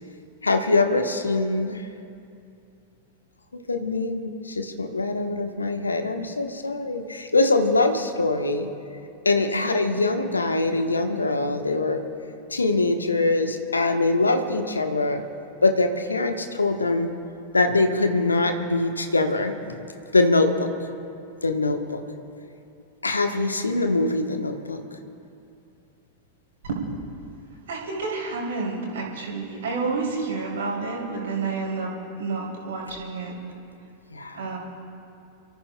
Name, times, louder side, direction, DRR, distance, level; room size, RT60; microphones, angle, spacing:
voice 1, 0.4-1.9 3.5-8.7 9.2-12.0 12.5-15.2 15.6-17.1 17.5-19.8 20.1-20.7 21.4-22.0 23.0-24.8 34.1-34.5, left 2 dB, 80° left, 5 dB, 1.2 m, -23 dB
voice 2, 26.7-27.1 27.7-31.9 32.2-33.3 34.3-34.6, right 4 dB, 60° right, -2 dB, 3.1 m, -29 dB
29.5 x 14.0 x 2.3 m, 2.6 s
figure-of-eight pair, 90°, 0 cm